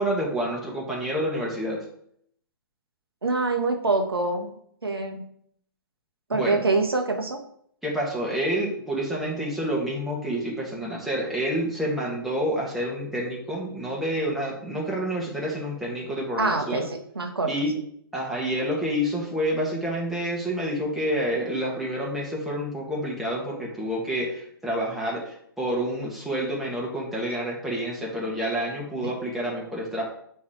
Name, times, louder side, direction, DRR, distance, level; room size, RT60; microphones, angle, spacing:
voice 1, 0.0-1.8 6.3-6.7 7.8-16.9 17.5-17.7 18.1-30.0, equal, ahead, -5 dB, 1.7 m, -28 dB
voice 2, 3.2-4.5 4.8-5.3 6.3-7.4 16.4-17.5 29.0-29.1, right 3 dB, 80° right, 4 dB, 1.0 m, -25 dB
9.2 x 3.3 x 3.6 m, 0.67 s
figure-of-eight pair, 120°, 12 cm